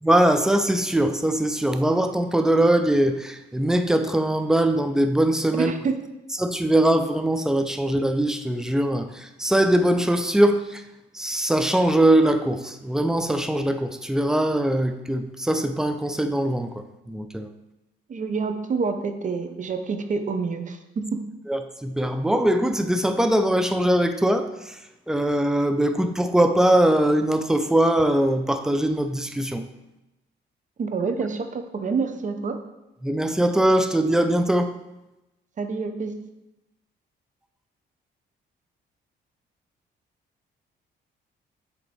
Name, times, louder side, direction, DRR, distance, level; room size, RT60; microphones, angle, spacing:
voice 1, 0.0-5.7 6.4-10.8 11.1-17.5 21.5-24.8 25.1-29.7 33.0-34.7, right 1 dB, 5° right, 8 dB, 0.4 m, -21 dB
voice 2, 5.6-6.0 18.1-21.2 30.8-32.6 35.6-36.1, right 4 dB, 40° right, 7 dB, 0.7 m, -27 dB
7.7 x 3.0 x 4.1 m, 0.97 s
cardioid pair, 90°, 20 cm